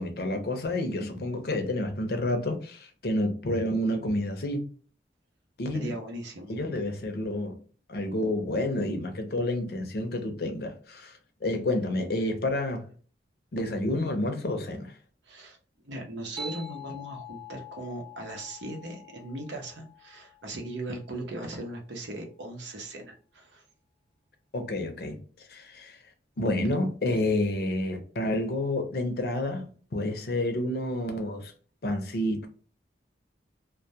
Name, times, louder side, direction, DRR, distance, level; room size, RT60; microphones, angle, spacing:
voice 1, 0.0-4.7 5.6-5.9 6.5-7.5 7.9-12.8 13.5-14.9 24.5-25.2 25.5-26.0 26.4-31.5 31.8-32.5, left 1 dB, 60° left, 0.6 m, -29 dB
voice 2, 5.7-6.5 15.3-15.6 15.8-23.6, right 1 dB, 85° right, 0.7 m, -38 dB
sound 1, 16.4-21.3, left 3 dB, 30° right, 0.3 m, -45 dB
2.2 x 2.1 x 2.7 m
head